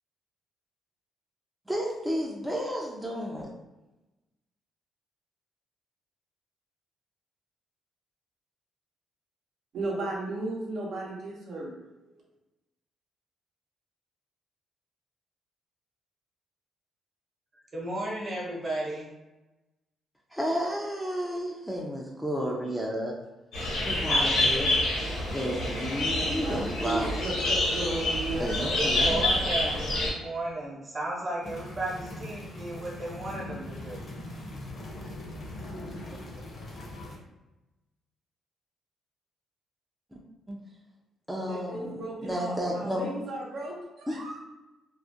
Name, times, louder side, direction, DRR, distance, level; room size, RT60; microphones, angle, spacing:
voice 1, 1.7-3.5 20.3-23.2 23.8-24.8 25.3-27.1 28.4-29.4 40.1-40.2 40.5-40.6 41.3-43.1 44.1-44.4, equal, 5° right, -3 dB, 0.4 m, -32 dB
voice 2, 9.7-11.7 12.1-12.2 26.1-28.5 41.5-44.4, right 2 dB, 70° right, -4 dB, 0.7 m, -35 dB
voice 3, 17.7-19.0 23.8-24.7 25.4-25.7 28.8-34.0, right 1 dB, 35° right, -4 dB, 0.9 m, -34 dB
sound 1, 23.5-30.1, left 1 dB, 80° left, 0.9 m, -27 dB
sound 2, 31.4-37.2, left 1 dB, 50° left, 0.6 m, -40 dB
2.3 x 2.0 x 2.6 m, 1.0 s
cardioid pair, 90°, 0 cm